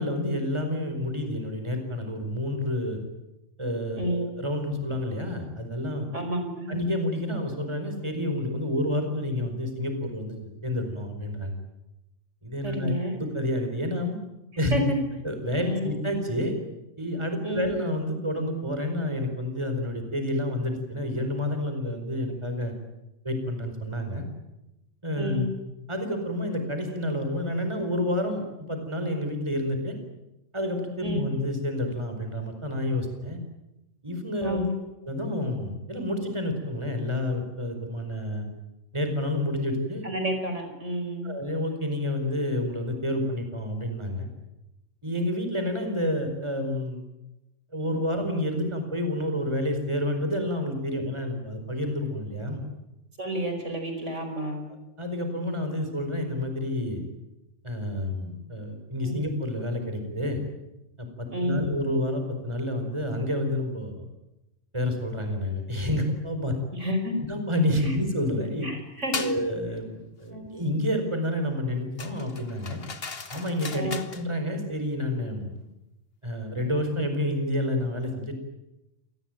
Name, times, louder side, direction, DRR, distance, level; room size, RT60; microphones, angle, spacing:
voice 1, 0.0-3.0 3.6-6.1 6.7-11.5 12.4-14.2 14.6-14.8 15.2-16.5 17.0-22.7 23.2-24.2 25.0-25.5 25.9-30.0 30.5-33.4 34.0-34.7 35.0-38.5 38.9-40.1 41.2-44.3 45.0-47.0 47.7-52.6 55.0-57.0 57.6-60.4 61.0-64.0 64.7-66.5 67.3-68.7 69.1-72.8 73.3-75.5 76.2-78.3, left 1 dB, 20° right, 6 dB, 4.8 m, -29 dB
voice 2, 6.1-6.8 12.6-13.2 14.7-15.0 15.6-15.9 17.4-17.8 25.2-25.5 31.0-31.2 34.4-34.7 40.0-41.3 53.2-54.7 59.0-59.2 61.3-61.7 66.8-67.2 68.6-69.1 70.3-70.6 73.7-74.0, equal, 70° right, 6 dB, 5.3 m, -30 dB
sound 1, 69.1-69.4 72.0-74.3, left 4 dB, 50° left, 1.8 m, -36 dB
27.5 x 19.5 x 9.2 m, 0.95 s
omnidirectional pair, 1.3 m